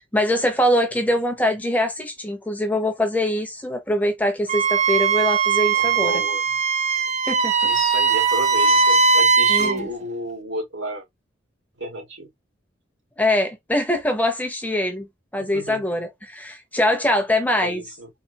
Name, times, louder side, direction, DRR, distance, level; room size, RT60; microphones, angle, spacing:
voice 1, 0.0-6.2 7.3-7.5 9.5-9.9 13.2-15.1 15.3-17.8, left 1 dB, 10° left, 0.8 m, -23 dB
Wind instrument woodwind instrument, 4.5-9.8, right 5 dB, 35° right, 0.5 m, -19 dB
voice 2, 5.7-6.5 7.7-11.0 11.8-12.3 15.5-15.8 17.6-18.1, right 2 dB, 80° right, 2.6 m, -31 dB
4.1 x 2.9 x 2.9 m
head